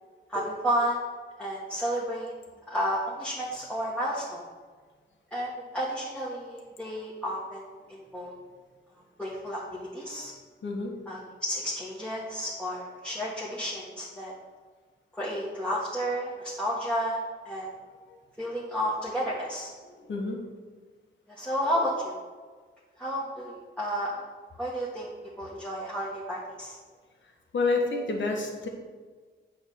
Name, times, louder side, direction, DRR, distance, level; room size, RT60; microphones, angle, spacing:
voice 1, 0.3-1.0 1.4-2.3 2.7-4.4 5.3-7.6 7.9-8.4 9.2-10.3 11.1-14.3 15.1-17.7 18.4-19.7 21.3-22.2 23.0-24.3 24.6-25.1 25.4-26.8, equal, 5° left, -7 dB, 1.7 m, -31 dB
voice 2, 10.6-10.9 18.1-18.2 19.9-20.4 27.5-28.7, left 3 dB, 75° left, 0 dB, 1.5 m, -29 dB
8.6 x 3.6 x 6.8 m, 1.4 s
wide cardioid pair, 100°, 19 cm